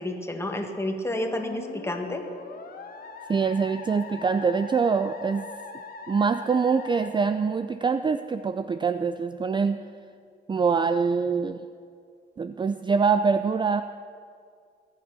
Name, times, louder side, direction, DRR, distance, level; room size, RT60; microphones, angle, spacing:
voice 1, 0.0-2.2, left 1 dB, 15° left, 4 dB, 1.8 m, -30 dB
Musical instrument, 1.1-8.0, left 4 dB, 50° left, 1.6 m, -42 dB
voice 2, 3.3-5.5 6.1-9.8 10.5-11.7 12.4-13.8, right 5 dB, 25° right, 10 dB, 0.4 m, -24 dB
21.0 x 7.4 x 6.1 m, 2.2 s
cardioid pair, 90°, 20 cm